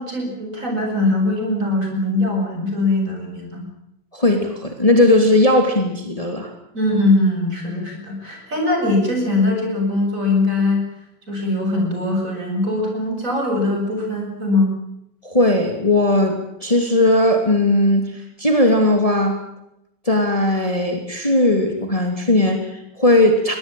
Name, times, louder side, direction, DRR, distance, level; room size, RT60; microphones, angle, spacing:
voice 1, 0.0-3.7 6.7-10.8 11.3-14.7, left 2 dB, 45° right, 1 dB, 8.1 m, -21 dB
voice 2, 4.1-6.5 15.2-16.3 16.6-19.4 20.0-23.6, left 1 dB, 20° left, 3 dB, 3.0 m, -17 dB
23.0 x 18.5 x 9.2 m, 0.82 s
omnidirectional pair, 2.0 m